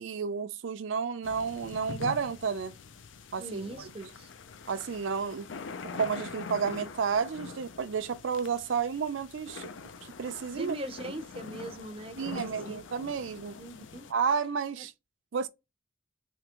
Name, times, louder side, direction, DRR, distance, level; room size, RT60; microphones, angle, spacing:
voice 1, 0.0-2.7 3.3-3.9 4.7-5.5 5.9-9.7 10.0-10.8 12.2-13.6 14.1-14.9 15.3-15.5, right 6 dB, 80° right, 0.4 m, -31 dB
sound 1, 1.2-14.1, left 5 dB, 80° left, 0.5 m, -44 dB
voice 2, 3.4-4.3 10.5-12.8 13.6-14.1, right 1 dB, 30° right, 0.5 m, -41 dB
3.5 x 2.8 x 2.9 m
head